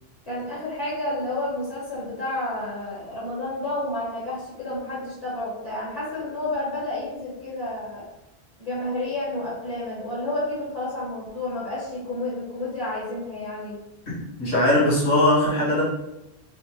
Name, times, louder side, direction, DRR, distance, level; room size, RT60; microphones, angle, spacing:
voice 1, 0.3-8.1 8.6-13.8, left 1 dB, 35° left, -10 dB, 1.5 m, -30 dB
voice 2, 14.4-15.8, left 1 dB, 85° left, -8 dB, 1.9 m, -19 dB
4.3 x 2.1 x 3.1 m, 0.92 s
omnidirectional pair, 1.1 m